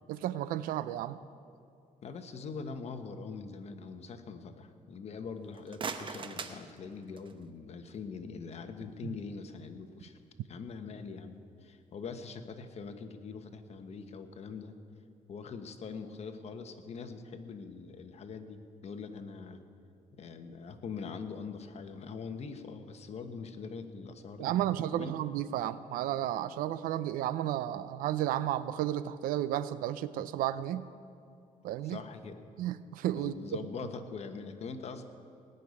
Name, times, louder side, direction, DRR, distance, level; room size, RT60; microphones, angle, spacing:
voice 1, 0.1-1.2 24.4-30.9 31.6-32.0 32.6-33.3, right 12 dB, 90° right, 15 dB, 0.6 m, -32 dB
voice 2, 2.0-10.2 10.5-14.7 15.3-19.6 20.2-24.6 24.9-25.1 31.8-32.4 33.1-35.0, left 5 dB, 50° left, 7 dB, 1.2 m, -43 dB
sound 1, 5.4-7.5, right 5 dB, 35° right, 0.9 m, -41 dB
18.0 x 6.7 x 9.7 m, 2.5 s
cardioid pair, 105°, 14 cm